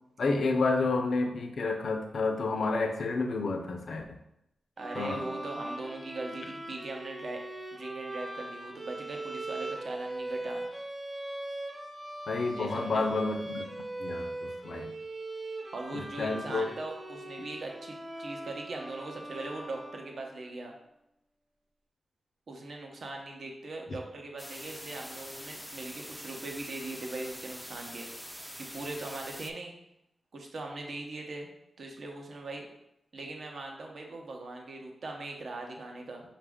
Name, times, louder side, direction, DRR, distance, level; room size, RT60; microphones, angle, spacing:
voice 1, 0.2-4.2 4.9-5.2 12.3-15.0 15.9-16.7 23.9-24.0, left 3 dB, 70° left, 5 dB, 0.5 m, -30 dB
sound 1, 4.8-20.4, right 1 dB, 30° right, 0.9 m, -40 dB
voice 2, 4.8-7.4 7.7-10.6 12.5-13.1 15.7-20.7 22.5-28.1 28.6-29.7 30.3-31.5 31.8-32.7 33.1-36.2, right 2 dB, 65° right, 1 dB, 0.7 m, -40 dB
sound 2, 24.4-29.5, equal, ahead, 0.3 m, -44 dB
5.0 x 2.4 x 3.5 m, 0.85 s
wide cardioid pair, 90°, 0 cm